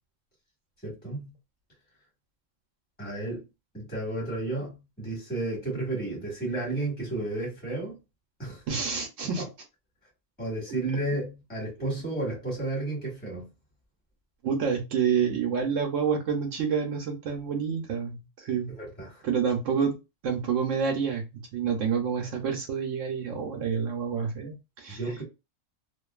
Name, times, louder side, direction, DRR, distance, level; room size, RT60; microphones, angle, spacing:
voice 1, 0.8-1.3 3.0-3.4 3.7-8.0 8.4-8.6 9.2-9.5 10.4-13.5 18.8-19.2 25.0-25.2, right 2 dB, 5° left, 1.3 m, -32 dB
voice 2, 8.7-9.4 14.4-18.7 19.2-20.0 20.2-25.0, right 6 dB, 80° right, 1.0 m, -28 dB
2.6 x 2.4 x 2.3 m
omnidirectional pair, 1.3 m